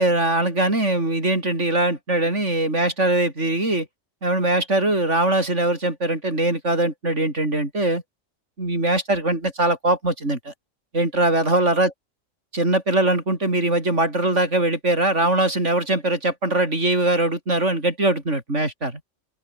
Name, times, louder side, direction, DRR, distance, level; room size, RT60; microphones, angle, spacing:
voice 1, 0.0-3.9 4.2-8.0 8.6-10.5 10.9-11.9 12.5-19.0, right 2 dB, 60° right, 6.4 m, -21 dB
open air
omnidirectional pair, 1.4 m